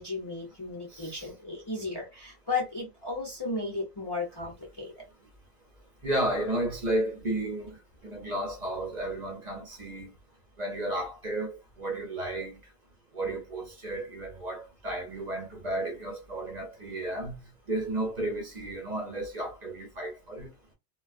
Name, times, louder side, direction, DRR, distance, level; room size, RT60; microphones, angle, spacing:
voice 1, 0.0-5.1, left 3 dB, 25° left, 0.7 m, -34 dB
voice 2, 0.9-1.3 6.0-7.8 8.0-10.1 10.6-12.6 13.1-17.4 17.7-20.5, right 1 dB, 40° right, 0.9 m, -33 dB
2.3 x 2.3 x 2.3 m
omnidirectional pair, 1.1 m